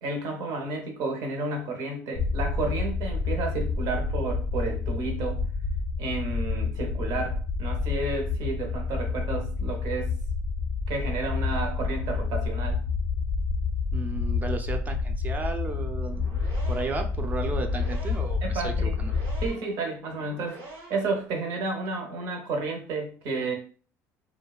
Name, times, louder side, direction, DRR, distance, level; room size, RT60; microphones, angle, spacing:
voice 1, 0.0-5.4 6.0-10.1 10.9-12.8 18.4-19.0 19.4-20.6 20.9-23.5, right 3 dB, 70° right, 3 dB, 0.8 m, -31 dB
sound 1, 2.2-19.5, left 4 dB, 50° left, 0.4 m, -29 dB
voice 2, 13.9-16.3 16.7-19.1, right 3 dB, 25° right, 5 dB, 0.4 m, -34 dB
sound 2, 15.9-21.2, right 2 dB, 85° right, 1.0 m, -46 dB
2.6 x 2.2 x 2.3 m, 0.41 s
supercardioid pair, 100°, 7 cm